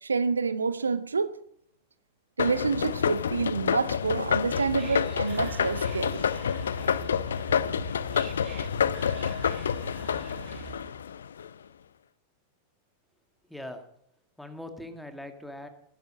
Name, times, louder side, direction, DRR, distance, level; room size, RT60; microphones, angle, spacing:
voice 1, 0.0-1.4 2.4-6.3, right 5 dB, 75° right, 0.6 m, -28 dB
sound 1, 2.4-11.5, left 7 dB, 65° left, 0.5 m, -28 dB
Whispering, 4.1-11.0, right 11 dB, 35° right, 1.4 m, -44 dB
voice 2, 13.4-13.9 14.4-15.7, left 1 dB, ahead, 2.1 m, -41 dB
15.5 x 12.0 x 5.2 m
figure-of-eight pair, 90°, 0 cm